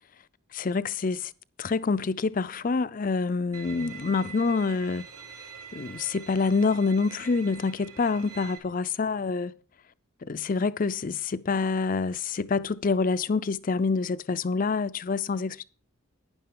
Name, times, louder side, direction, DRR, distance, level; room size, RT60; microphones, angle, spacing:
voice 1, 0.5-1.3 1.6-5.1 5.7-9.5 10.2-15.6, left 4 dB, 40° left, 0.4 m, -27 dB
Bowed string instrument, 3.5-8.6, right 7 dB, 80° right, 3.3 m, -45 dB
11.5 x 10.5 x 3.8 m
head